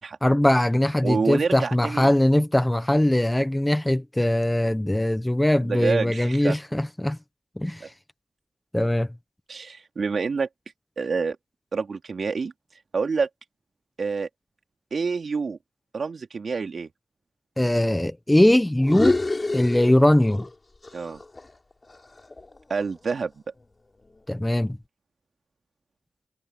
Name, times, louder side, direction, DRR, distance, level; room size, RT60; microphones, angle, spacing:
voice 1, 0.2-7.2 7.6-7.9 8.7-9.1 17.6-19.2 19.5-20.4 24.3-24.8, left 1 dB, 10° left, 1.2 m, -21 dB
voice 2, 1.0-2.1 5.6-6.6 7.8-7.9 9.5-10.5 11.0-11.4 11.7-12.5 12.9-13.3 14.0-14.3 14.9-15.6 15.9-16.9 20.9-21.2 22.7-23.4, right 5 dB, 55° right, 3.0 m, -27 dB
sound 1, 18.8-20.5 20.8-23.1, left 2 dB, 30° left, 7.2 m, -28 dB
cardioid pair, 65°, 0 cm